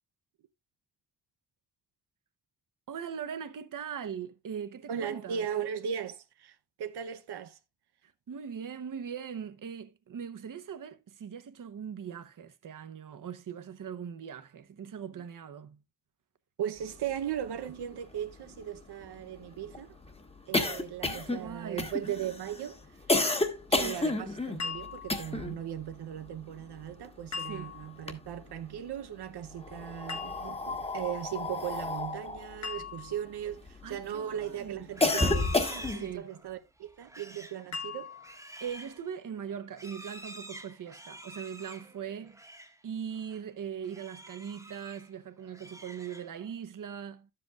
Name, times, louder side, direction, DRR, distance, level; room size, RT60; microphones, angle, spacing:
voice 1, 2.9-5.4 8.3-15.8 21.0-21.9 27.3-27.8 33.8-34.9 35.9-36.3 38.6-42.4 42.8-47.3, right 8 dB, 55° right, 0.9 m, -40 dB
voice 2, 4.9-7.6 16.6-20.0 20.5-22.8 23.7-38.1, right 9 dB, 80° right, 0.8 m, -38 dB
sound 1, 17.4-17.5 17.7-17.8 18.2-25.6 25.9-27.5 27.8-28.8 29.5-34.0 34.4-36.2, left 2 dB, 15° left, 1.2 m, -31 dB
sound 2, 24.6-25.3 27.3-28.0 30.1-30.8 32.6-33.3 35.2-36.1 37.7-38.5, left 5 dB, 45° left, 1.4 m, -39 dB
Livestock farm animals working animals, 34.9-42.8 43.1-43.4 43.8-45.1 45.4-46.5, right 1 dB, 10° right, 1.1 m, -48 dB
12.0 x 7.8 x 2.3 m
wide cardioid pair, 120°, 39 cm